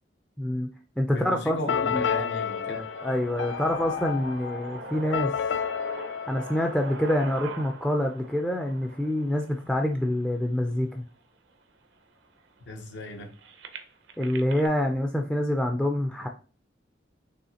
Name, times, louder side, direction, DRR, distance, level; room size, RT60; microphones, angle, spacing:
voice 1, 0.4-0.7 1.0-2.3 2.7-5.3 6.3-11.0 14.2-16.3, left 1 dB, 5° left, 0.4 m, -27 dB
voice 2, 1.1-2.8 12.7-13.3, left 1 dB, 70° left, 0.8 m, -35 dB
sound 1, 1.2-11.2 11.9-12.0 12.2-14.7, right 4 dB, 75° right, 0.6 m, -44 dB
sound 2, 1.7-7.4, left 7 dB, 85° left, 0.3 m, -31 dB
5.6 x 3.2 x 2.8 m
head